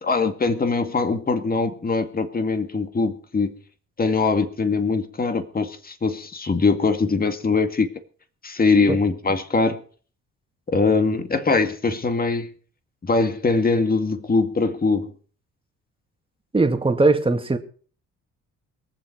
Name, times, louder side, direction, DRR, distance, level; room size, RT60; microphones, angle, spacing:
voice 1, 0.0-3.6 4.0-7.9 8.4-9.8 10.7-12.5 13.0-15.1, left 4 dB, 30° left, 2.1 m, -22 dB
voice 2, 16.5-17.6, right 3 dB, 20° right, 2.1 m, -19 dB
22.0 x 7.6 x 6.0 m
cardioid pair, 90°, 30 cm